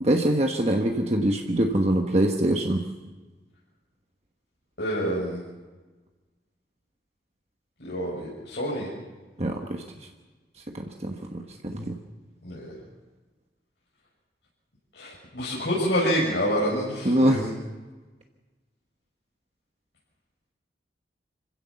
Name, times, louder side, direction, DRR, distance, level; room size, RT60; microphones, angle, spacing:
voice 1, 0.0-2.8 9.4-9.8 10.7-12.0 17.0-17.5, right 1 dB, 35° right, 3 dB, 1.3 m, -24 dB
voice 2, 4.8-5.4 7.8-8.9 12.4-12.7 14.9-17.5, equal, 80° left, -6 dB, 6.3 m, -27 dB
26.5 x 16.0 x 7.1 m, 1.3 s
head